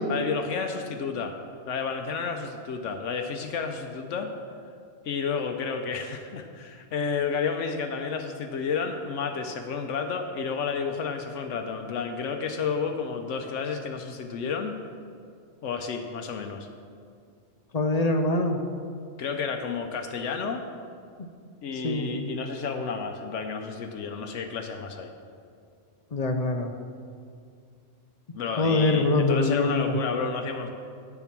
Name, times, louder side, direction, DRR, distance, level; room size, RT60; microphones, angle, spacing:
voice 1, 0.1-1.3 1.7-4.3 5.0-14.7 15.6-16.7 19.2-20.6 21.6-25.1 28.3-30.7, left 5 dB, 80° left, 5 dB, 1.0 m, -31 dB
voice 2, 17.7-18.6 21.8-22.1 26.1-26.7 28.6-30.0, left 2 dB, 40° left, 6 dB, 0.6 m, -24 dB
9.1 x 7.2 x 5.9 m, 2.3 s
omnidirectional pair, 1.3 m